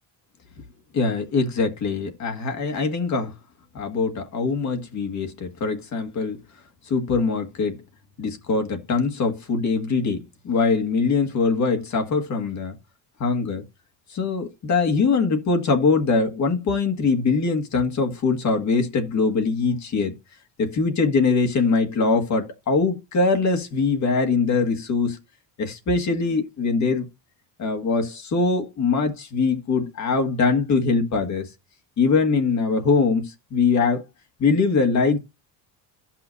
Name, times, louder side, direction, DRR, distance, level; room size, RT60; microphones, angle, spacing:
voice 1, 0.9-3.3 3.7-6.4 6.9-7.8 8.2-12.8 13.2-13.6 14.1-20.1 20.6-25.2 25.6-27.1 27.6-31.5 32.0-34.0 34.4-35.2, left 4 dB, 45° left, 1.8 m, -22 dB
14.5 x 5.9 x 2.7 m
cardioid pair, 125°, 40 cm